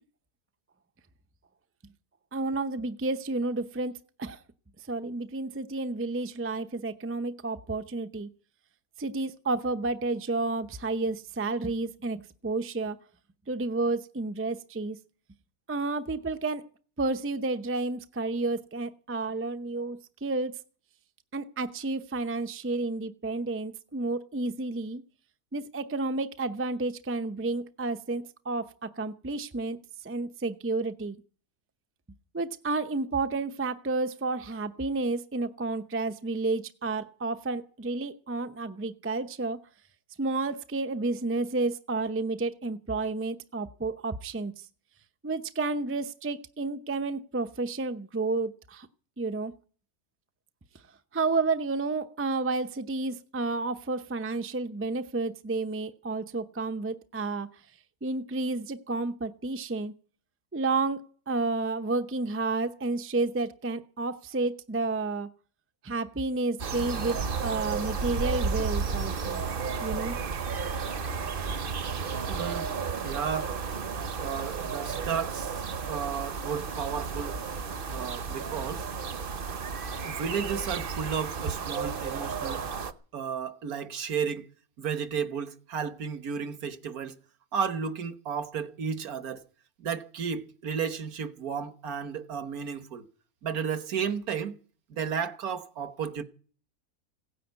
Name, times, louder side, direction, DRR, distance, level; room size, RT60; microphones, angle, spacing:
voice 1, 2.3-4.4 4.9-8.3 9.0-13.0 13.5-15.0 15.7-16.6 17.0-20.5 21.3-25.0 25.5-29.8 30.0-31.2 32.3-39.6 40.2-44.5 45.2-48.9 49.2-49.5 51.1-57.5 58.0-59.9 60.5-65.3 65.8-69.4 69.8-70.2, right 3 dB, 15° right, 0.4 m, -31 dB
sound 1, 66.6-82.9, right 5 dB, 45° right, 0.9 m, -33 dB
voice 2, 72.1-72.7 73.0-73.6 74.2-75.5 75.9-77.4 77.9-78.9 80.0-82.7 83.1-84.5 84.8-87.2 87.5-89.4 89.8-93.0 93.4-94.6 94.9-96.2, right 6 dB, 75° right, 1.7 m, -33 dB
16.5 x 10.0 x 8.1 m
omnidirectional pair, 1.6 m